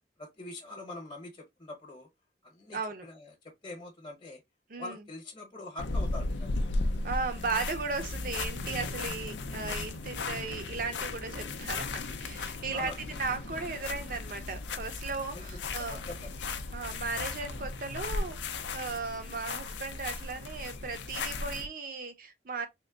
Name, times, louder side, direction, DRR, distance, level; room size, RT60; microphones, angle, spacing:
voice 1, 0.2-2.1 2.4-4.4 4.8-6.6 12.7-12.9 13.3-13.4 15.3-16.4, left 2 dB, 25° left, 1.2 m, -44 dB
voice 2, 2.7-3.1 4.7-5.0 7.0-16.0 16.7-22.7, right 4 dB, 50° right, 0.8 m, -36 dB
sound 1, 5.8-21.7, left 3 dB, 85° left, 0.6 m, -36 dB
3.7 x 2.1 x 3.7 m
head